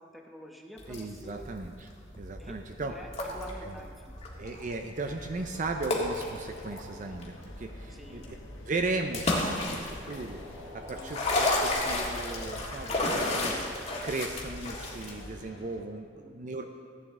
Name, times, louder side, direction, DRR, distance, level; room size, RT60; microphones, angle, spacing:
voice 1, 0.0-1.5 2.4-4.1 7.9-8.3 10.9-11.3 16.1-16.7, equal, ahead, 0 dB, 1.0 m, -48 dB
sound 1, 0.8-15.3, left 2 dB, 35° left, 1.6 m, -33 dB
voice 2, 0.9-1.9 2.2-2.9 3.6-3.8 4.4-8.4 8.7-10.4 10.7-13.7 14.0-16.6, right 3 dB, 40° right, 5 dB, 0.5 m, -36 dB
sound 2, 5.0-15.8, left 2 dB, 85° left, 1.0 m, -50 dB
sound 3, 9.4-13.4, left 1 dB, 25° right, 2.7 m, -48 dB
14.5 x 8.6 x 3.6 m, 2.2 s
head